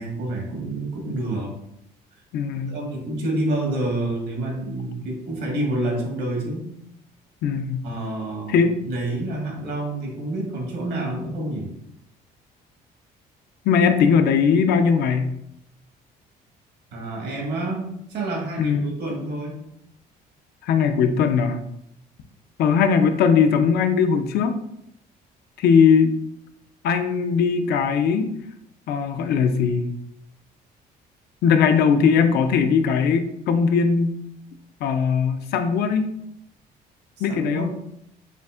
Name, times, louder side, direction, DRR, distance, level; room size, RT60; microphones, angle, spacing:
voice 1, 0.0-1.5 2.6-6.7 7.8-11.7 16.9-19.6 37.2-37.8, right 1 dB, 75° right, -1 dB, 1.5 m, -28 dB
voice 2, 2.3-2.8 7.4-7.9 8.5-8.7 13.6-15.3 18.6-18.9 20.6-21.6 22.6-24.6 25.6-26.1 26.8-28.3 28.9-29.9 31.4-34.1 34.8-36.2 37.2-37.7, left 6 dB, 70° left, 8 dB, 0.5 m, -19 dB
6.9 x 2.4 x 2.4 m, 0.77 s
cardioid pair, 110°, 17 cm